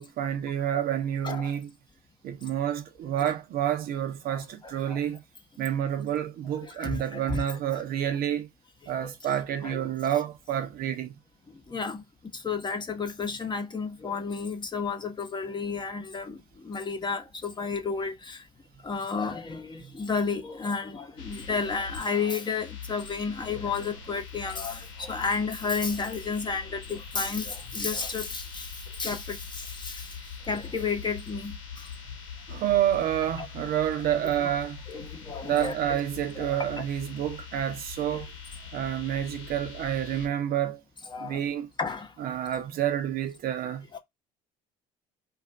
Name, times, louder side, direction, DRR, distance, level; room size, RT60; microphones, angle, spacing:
voice 1, 0.0-1.7 2.2-5.2 5.6-8.5 8.9-11.2 19.8-20.0 32.5-34.8 35.4-38.3 38.7-40.8 41.2-41.7 42.2-43.9, right 10 dB, 55° right, 0.6 m, -29 dB
voice 2, 6.6-7.4 7.7-8.1 9.0-9.1 9.6-9.8 11.7-12.0 12.3-16.4 16.6-18.4 18.8-30.1 30.5-31.9 34.9-35.7 36.4-36.6 41.1-41.4 41.8-42.1 43.9-44.0, left 5 dB, 25° left, 0.8 m, -32 dB
sound 1, 21.2-40.3, left 6 dB, 75° left, 1.1 m, -43 dB
2.6 x 2.4 x 3.3 m
hypercardioid pair, 75°, 19 cm